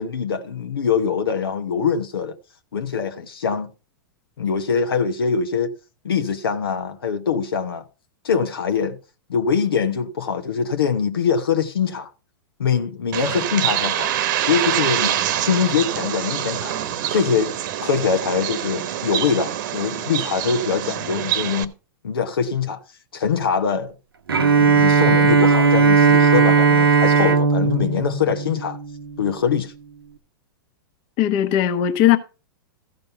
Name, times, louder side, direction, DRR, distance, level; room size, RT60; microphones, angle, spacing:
voice 1, 0.0-2.4 2.7-3.7 4.4-5.7 6.0-7.8 8.2-9.0 9.3-12.1 12.6-14.1 14.5-16.7 17.1-17.5 17.8-21.7 22.0-22.8 23.1-23.9 24.5-28.8 29.2-29.7, left 6 dB, 85° left, 1.1 m, -23 dB
Bird, 13.1-21.6, right 11 dB, 60° right, 1.0 m, -25 dB
Bowed string instrument, 24.3-29.2, right 5 dB, 90° right, 1.0 m, -17 dB
voice 2, 31.2-32.2, left 11 dB, 45° left, 1.3 m, -18 dB
14.0 x 5.3 x 5.6 m
hypercardioid pair, 110°, 12 cm